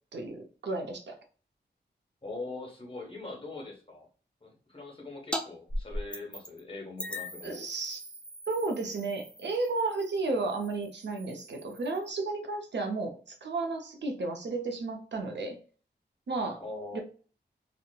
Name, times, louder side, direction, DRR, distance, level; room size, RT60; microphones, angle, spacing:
voice 1, 0.1-1.2 7.4-8.0 8.5-15.6 16.3-16.6 16.9-17.0, right 3 dB, 80° right, 4 dB, 0.6 m, -33 dB
voice 2, 2.2-4.1 4.4-7.6 16.6-17.0, left 3 dB, 30° left, -1 dB, 1.0 m, -42 dB
sound 1, 5.3-5.4 5.7-6.6 7.0-12.1, equal, 5° left, 0.3 m, -40 dB
2.9 x 2.1 x 2.2 m, 0.39 s
wide cardioid pair, 105°, 18 cm